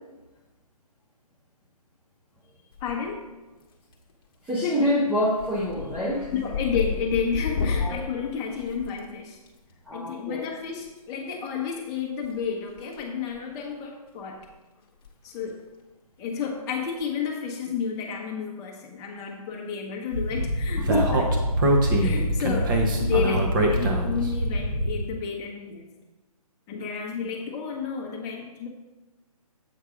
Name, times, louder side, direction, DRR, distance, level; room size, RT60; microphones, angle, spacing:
sound 1, 2.7-3.3 3.6-4.1 4.5-4.8 5.1-9.5 10.9-11.0 12.2-13.0 13.3-13.5 14.1-14.2 14.4-14.5 14.9-15.1 15.4-15.5 17.0-17.3, left 5 dB, 35° left, 1.2 m, -32 dB
voice 1, 2.8-3.2 5.9-6.0 6.3-9.4 9.9-14.4 15.2-15.6 16.2-21.7 22.0-25.9 26.7-28.7, left 6 dB, 15° left, 0 dB, 1.0 m, -31 dB
voice 2, 4.5-6.4 7.8-8.2 9.9-10.4 20.9-21.2, left 1 dB, 5° right, -7 dB, 0.6 m, -26 dB
Speech, 20.1-25.1, right 1 dB, 35° right, 1.0 m, -23 dB
7.7 x 4.6 x 4.9 m, 1.1 s
figure-of-eight pair, 145°, 20 cm